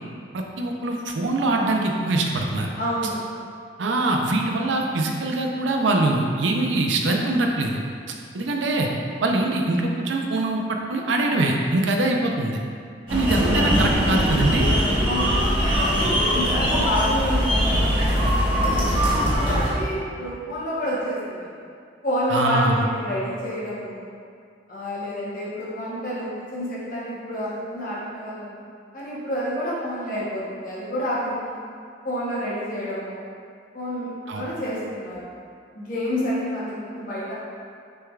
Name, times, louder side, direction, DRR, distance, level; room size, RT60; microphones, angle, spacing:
voice 1, 0.3-2.7 3.8-7.8 8.3-8.9 9.2-12.6 13.1-14.7 22.3-22.8 34.3-34.4, right 2 dB, 80° right, 2 dB, 0.5 m, -23 dB
voice 2, 2.8-3.2 15.0-15.4 15.8-21.5 22.0-24.1 24.7-28.6 28.9-31.6 32.0-33.2 33.7-34.1 34.3-35.3 35.7-37.3, equal, 45° left, -8 dB, 1.0 m, -29 dB
sound 1, 13.1-19.7, equal, 30° right, 1.1 m, -21 dB
6.2 x 3.4 x 2.4 m, 2.2 s
head